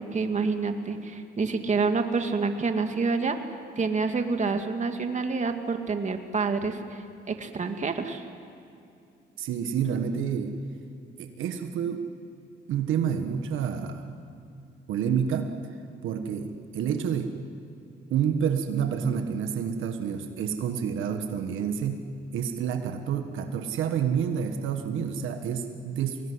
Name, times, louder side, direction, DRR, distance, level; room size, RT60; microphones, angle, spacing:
voice 1, 0.0-3.4 3.8-8.2, right 4 dB, 35° right, 6 dB, 2.2 m, -28 dB
voice 2, 9.4-10.6 11.2-12.0 12.7-14.2 14.9-15.5 16.0-17.3 18.1-22.1 22.3-26.3, right 7 dB, 80° right, 6 dB, 1.5 m, -28 dB
23.0 x 19.5 x 9.8 m, 2.6 s
cardioid pair, 90°, 20 cm